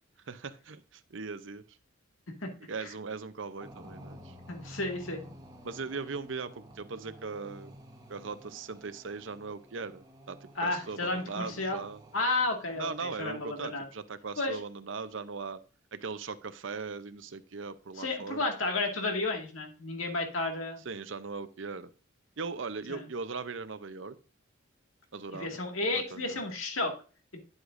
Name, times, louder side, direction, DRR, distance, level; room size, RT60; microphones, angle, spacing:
voice 1, 0.3-1.6 2.7-4.3 5.6-7.7 8.1-12.0 12.8-15.6 15.9-18.5 20.8-21.9 22.4-24.2 25.1-25.6 25.9-26.4, right 4 dB, 65° right, 13 dB, 0.7 m, -39 dB
sound 1, 3.6-13.5, equal, 20° right, 1.2 m, -52 dB
voice 2, 4.5-5.3 10.6-11.8 12.1-13.8 14.4-14.6 18.0-20.8 22.9-23.0 25.3-26.9, left 2 dB, 80° left, 3 dB, 2.0 m, -32 dB
9.7 x 8.0 x 2.6 m, 0.37 s
head